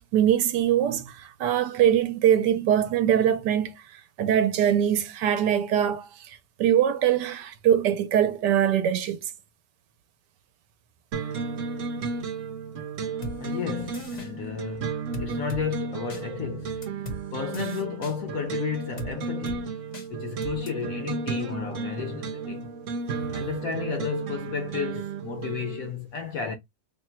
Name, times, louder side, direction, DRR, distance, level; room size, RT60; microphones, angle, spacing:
voice 1, 0.0-3.7 4.2-9.3 23.2-23.3, right 10 dB, 80° right, 1.2 m, -23 dB
sound 1, 11.1-25.9, right 5 dB, 60° right, 0.9 m, -33 dB
sound 2, 13.2-13.4 13.9-14.3 15.1-15.6 16.1-16.2 16.8-17.2 17.5-18.1 19.0-19.1 19.5-19.6 19.9-20.1 20.4-20.7, equal, 40° left, 0.6 m, -37 dB
voice 2, 13.4-16.9 17.3-19.8 20.1-22.7 23.3-26.6, left 7 dB, 70° left, 0.8 m, -33 dB
3.6 x 2.2 x 4.1 m
omnidirectional pair, 1.9 m